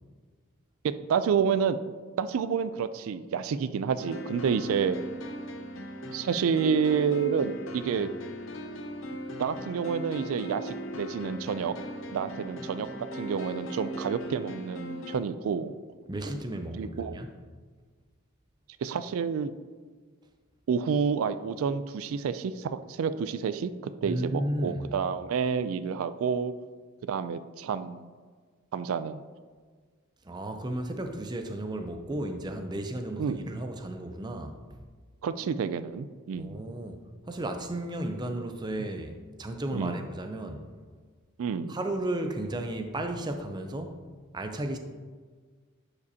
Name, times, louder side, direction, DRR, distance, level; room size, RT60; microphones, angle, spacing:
voice 1, 0.8-1.8 2.2-5.0 6.1-8.1 9.4-11.7 12.1-12.9 13.1-15.8 16.7-17.2 18.8-19.5 20.7-26.5 27.1-28.1 28.7-29.2 33.2-33.4 35.2-36.6 39.7-40.0 41.4-41.8, right 6 dB, 75° right, 12 dB, 0.3 m, -29 dB
sound 1, 4.0-15.2, equal, 65° left, 0.7 m, -38 dB
voice 2, 16.1-17.3 24.0-24.8 30.2-34.8 36.4-37.0 37.3-40.7 41.7-44.0 44.3-44.8, right 1 dB, 20° right, 6 dB, 0.5 m, -34 dB
10.5 x 5.0 x 2.8 m, 1.5 s
head